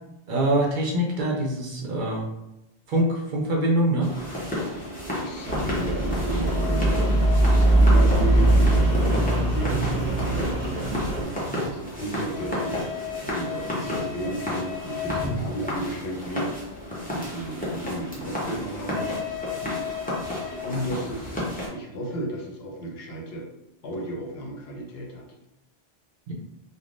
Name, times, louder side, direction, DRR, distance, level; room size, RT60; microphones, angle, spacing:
voice 1, 0.3-2.3 2.9-4.1 26.3-26.4, right 1 dB, 60° right, -1 dB, 0.6 m, -24 dB
sound 1, 4.0-21.7, left 2 dB, 10° left, 0.7 m, -31 dB
voice 2, 5.0-10.5 11.1-12.9 13.2-16.6 17.1-19.1 20.6-23.5 23.8-25.2, right 1 dB, 75° left, 0 dB, 0.9 m, -34 dB
Rain, 5.5-11.2, right 1 dB, 10° right, 1.0 m, -21 dB
3.3 x 2.2 x 2.5 m, 0.92 s
omnidirectional pair, 1.1 m